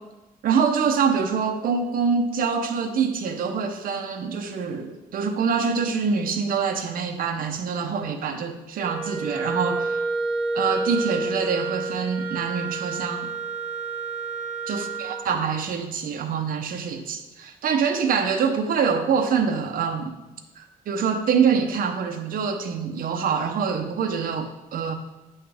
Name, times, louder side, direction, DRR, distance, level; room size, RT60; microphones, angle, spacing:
voice 1, 0.4-10.0 10.5-13.3 14.7-20.2 20.6-24.9, right 6 dB, 60° right, 5 dB, 0.7 m, -25 dB
Wind instrument woodwind instrument, 8.8-15.3, right 3 dB, 5° right, 1.3 m, -29 dB
8.7 x 5.6 x 3.4 m, 1.0 s
cardioid pair, 165°, 16 cm